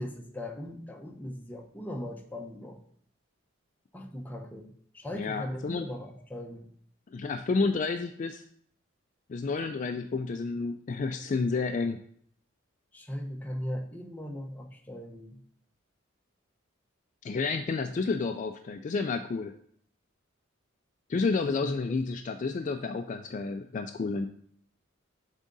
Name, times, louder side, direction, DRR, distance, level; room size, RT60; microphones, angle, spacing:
voice 1, 0.0-2.8 3.9-6.7 12.9-15.4 17.3-17.5 21.5-21.7, left 1 dB, 10° left, 2 dB, 0.6 m, -39 dB
voice 2, 5.2-5.9 7.1-8.4 9.3-12.0 17.2-19.5 21.1-24.3, left 4 dB, 40° left, 7 dB, 0.3 m, -30 dB
7.4 x 3.6 x 4.0 m, 0.62 s
head